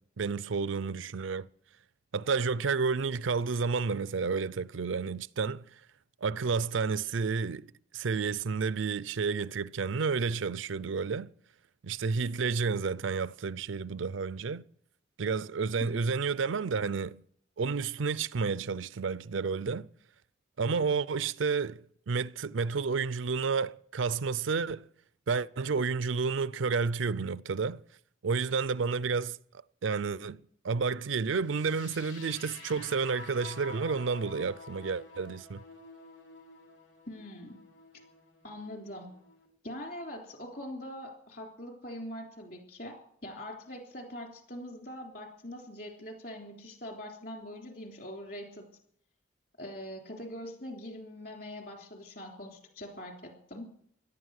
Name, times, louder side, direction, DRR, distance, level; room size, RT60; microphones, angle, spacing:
voice 1, 0.0-1.5 2.1-5.6 6.2-11.3 11.8-14.7 15.2-17.2 17.6-19.9 20.6-24.9 25.3-27.8 28.2-29.4 29.8-35.6, right 5 dB, 85° right, 0.5 m, -31 dB
sound 1, 31.4-39.5, left 4 dB, 75° left, 3.7 m, -50 dB
voice 2, 37.1-37.6 38.4-39.1 39.6-43.0 43.2-48.7 49.6-53.7, left 1 dB, 50° left, 3.5 m, -43 dB
17.0 x 11.5 x 6.5 m
head